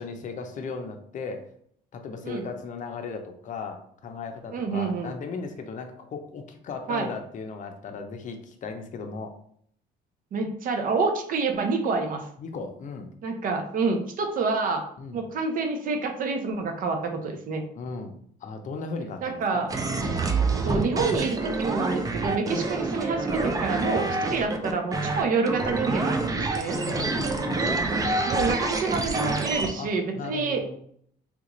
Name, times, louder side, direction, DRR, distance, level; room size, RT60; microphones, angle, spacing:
voice 1, 0.0-1.4 1.9-9.3 12.4-13.1 15.0-15.2 17.7-18.2 18.4-19.7 22.5-22.7 24.3-24.5 26.7-27.9 29.8-30.8, left 4 dB, 50° left, 5 dB, 0.6 m, -37 dB
voice 2, 4.5-5.1 6.9-7.1 10.3-12.2 13.2-14.8 15.1-17.6 19.2-19.7 20.6-26.8 28.3-30.6, right 4 dB, 55° right, 4 dB, 0.7 m, -27 dB
sound 1, 19.7-29.7, right 3 dB, 20° right, 0.4 m, -27 dB
3.5 x 2.4 x 3.0 m, 0.65 s
cardioid pair, 110°, 17 cm